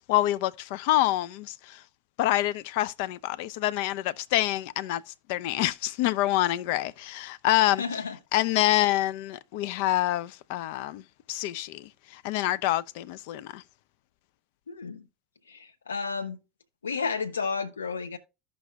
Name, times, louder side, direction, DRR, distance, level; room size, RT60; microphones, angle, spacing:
voice 1, 0.1-1.8 2.2-5.0 5.3-7.8 8.3-11.0 11.3-13.6, left 15 dB, 65° left, 0.4 m, -26 dB
voice 2, 7.8-8.2 14.7-15.1 15.5-16.4 16.8-18.2, left 5 dB, 90° left, 0.8 m, -32 dB
14.5 x 5.2 x 2.2 m
hypercardioid pair, 75°, 0 cm